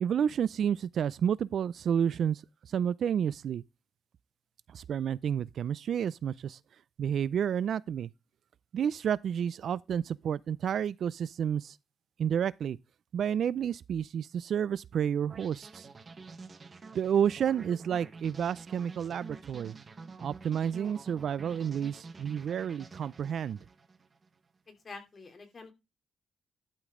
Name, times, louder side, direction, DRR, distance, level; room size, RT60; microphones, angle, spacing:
voice 1, 0.0-2.4 2.7-3.6 4.7-6.6 7.0-8.1 8.7-11.7 12.2-12.8 13.1-15.8 16.9-19.7 20.2-23.6, right 8 dB, 65° right, 0.4 m, -30 dB
sound 1, 15.3-24.3, right 4 dB, 35° right, 1.2 m, -48 dB
voice 2, 24.7-25.7, left 3 dB, 35° left, 2.9 m, -47 dB
11.5 x 5.2 x 3.7 m
cardioid pair, 105°, 0 cm